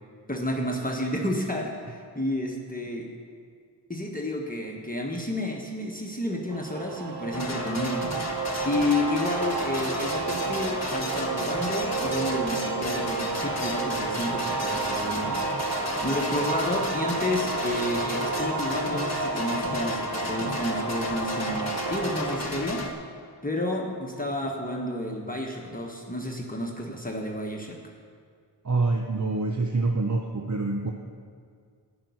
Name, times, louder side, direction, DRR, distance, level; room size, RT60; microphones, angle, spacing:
voice 1, 0.3-3.1 3.9-8.1 8.6-15.4 16.0-22.8 23.4-27.8, left 1 dB, 20° left, -1 dB, 1.3 m, -31 dB
sound 1, 6.5-22.4, right 4 dB, 65° right, 1.3 m, -31 dB
sound 2, 7.3-22.9, left 2 dB, 35° left, 1.4 m, -33 dB
voice 2, 28.6-30.9, right 3 dB, 45° right, 3 dB, 0.8 m, -26 dB
12.5 x 6.1 x 9.5 m, 2.1 s
wide cardioid pair, 65°, 42 cm